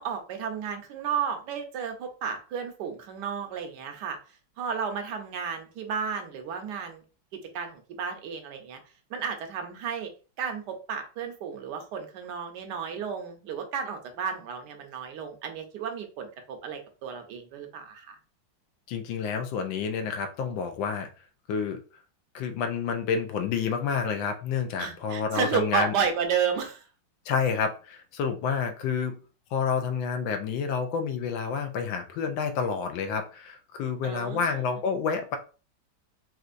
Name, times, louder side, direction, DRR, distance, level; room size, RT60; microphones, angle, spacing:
voice 1, 0.0-4.2 4.6-7.0 7.5-8.8 9.1-10.1 10.4-18.1 24.8-26.8 34.0-34.6, right 7 dB, 65° right, 5 dB, 1.2 m, -32 dB
voice 2, 18.9-21.1 21.5-21.8 22.3-25.9 27.3-29.2 29.5-35.4, left 6 dB, 75° left, 6 dB, 1.3 m, -29 dB
4.3 x 2.4 x 2.5 m, 0.35 s
omnidirectional pair, 2.2 m